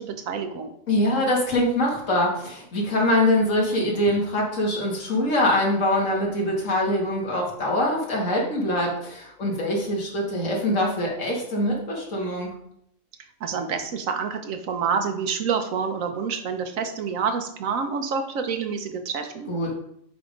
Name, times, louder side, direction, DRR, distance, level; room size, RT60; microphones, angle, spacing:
voice 1, 0.0-0.7 13.4-19.5, right 6 dB, 75° right, 6 dB, 1.2 m, -28 dB
voice 2, 0.9-12.5 19.5-19.7, left 1 dB, 65° left, -3 dB, 2.2 m, -23 dB
7.5 x 3.6 x 5.1 m, 0.73 s
omnidirectional pair, 1.4 m